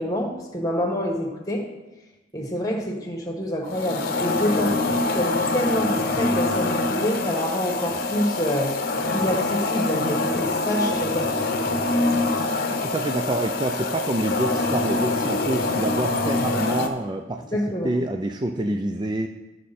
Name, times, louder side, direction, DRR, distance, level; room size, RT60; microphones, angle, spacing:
voice 1, 0.0-1.6 2.3-8.7 9.1-11.3 17.5-18.0, equal, 20° left, 1 dB, 1.6 m, -27 dB
sound 1, 3.7-16.9, left 2 dB, 50° left, 0.9 m, -25 dB
voice 2, 12.6-17.4 17.8-19.3, right 2 dB, 20° right, 4 dB, 0.4 m, -27 dB
13.5 x 6.3 x 4.2 m, 1.1 s
head